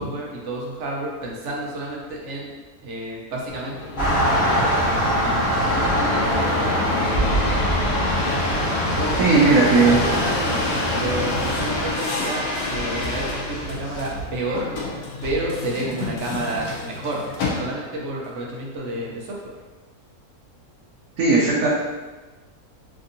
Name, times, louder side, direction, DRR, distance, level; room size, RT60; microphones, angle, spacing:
voice 1, 0.0-2.5 2.8-7.8 9.0-9.5 9.8-10.6 10.9-12.4 12.7-14.7 15.2-19.5, right 1 dB, 60° right, -2 dB, 0.9 m, -31 dB
sound 1, 3.5-18.0 18.6-19.2, left 2 dB, 80° left, 1.2 m, -29 dB
sound 2, 4.0-11.9, equal, 40° left, 1.3 m, -23 dB
voice 2, 9.2-10.0 21.2-21.7, right 4 dB, 80° right, -6 dB, 1.1 m, -16 dB
3.5 x 2.6 x 2.6 m, 1.2 s
omnidirectional pair, 1.6 m